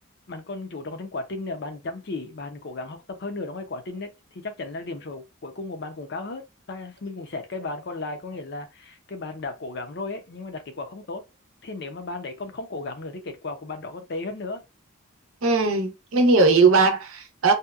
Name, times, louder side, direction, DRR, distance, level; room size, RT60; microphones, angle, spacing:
voice 1, 0.3-6.4 6.7-11.2 11.6-14.6, left 3 dB, 55° left, 0.5 m, -35 dB
voice 2, 15.4-17.5, right 3 dB, 80° right, 0.7 m, -19 dB
2.7 x 2.2 x 2.3 m
head